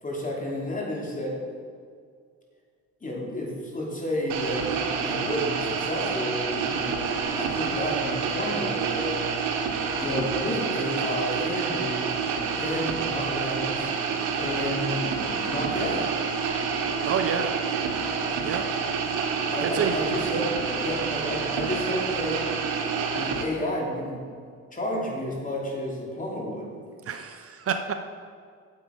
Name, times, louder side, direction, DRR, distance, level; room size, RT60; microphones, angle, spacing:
voice 1, 0.0-1.4 3.0-7.0 7.4-9.3 10.0-12.1 12.5-13.9 14.4-16.1 19.5-22.4 23.1-24.2 24.7-26.7, left 1 dB, 25° left, -2 dB, 2.7 m, -31 dB
sound 1, 4.3-23.4, right 6 dB, 90° right, 1.1 m, -28 dB
voice 2, 17.0-17.5 18.4-18.6 19.6-20.0 27.1-27.9, right 7 dB, 50° right, 7 dB, 0.7 m, -28 dB
9.2 x 7.5 x 5.1 m, 2.1 s
cardioid pair, 90°, 30 cm